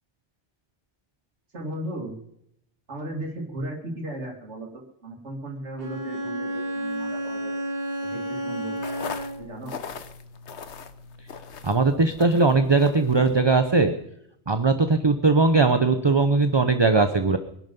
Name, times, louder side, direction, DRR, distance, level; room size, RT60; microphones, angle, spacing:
voice 1, 1.5-2.1 2.9-7.6 8.0-8.8 9.4-9.8, right 1 dB, 80° right, 0 dB, 2.8 m, -36 dB
Bowed string instrument, 5.8-9.6, right 1 dB, 55° right, 2.1 m, -31 dB
sound 1, 8.7-13.8, left 6 dB, 70° left, 1.3 m, -40 dB
voice 2, 11.6-13.9 14.5-17.4, right 3 dB, 25° right, 8 dB, 0.8 m, -20 dB
23.0 x 11.5 x 5.4 m, 0.77 s
omnidirectional pair, 1.2 m